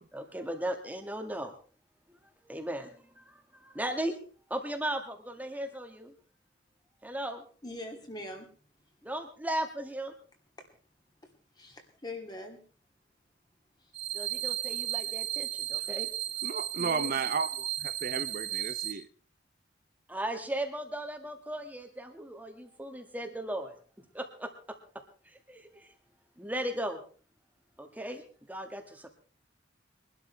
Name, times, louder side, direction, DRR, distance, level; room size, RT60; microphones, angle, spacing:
voice 1, 0.1-1.5 2.4-4.2 4.5-6.1 7.0-7.4 9.0-10.1 14.1-16.1 20.1-24.8 25.3-25.9 26.4-27.0 27.8-28.2 28.5-29.1, right 1 dB, 10° right, 1.9 m, -37 dB
voice 2, 7.6-8.5 10.6-10.7 11.6-12.6 16.8-17.3, left 1 dB, 25° left, 2.8 m, -42 dB
sound 1, 13.9-18.9, right 13 dB, 80° right, 3.3 m, -34 dB
voice 3, 16.4-19.1, right 5 dB, 50° right, 0.7 m, -34 dB
23.0 x 12.5 x 3.4 m
head